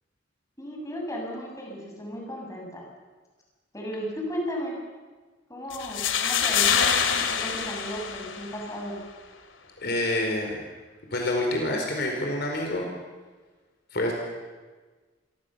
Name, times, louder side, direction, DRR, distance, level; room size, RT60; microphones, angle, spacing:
voice 1, 0.6-2.8 3.7-4.8 5.5-9.0, equal, 15° left, -1 dB, 7.3 m, -35 dB
sound 1, 5.7-8.7, left 7 dB, 85° left, 2.5 m, -25 dB
voice 2, 9.8-10.6 11.1-12.9 13.9-14.1, left 1 dB, 55° left, 1 dB, 4.7 m, -27 dB
28.0 x 23.0 x 7.0 m, 1.4 s
head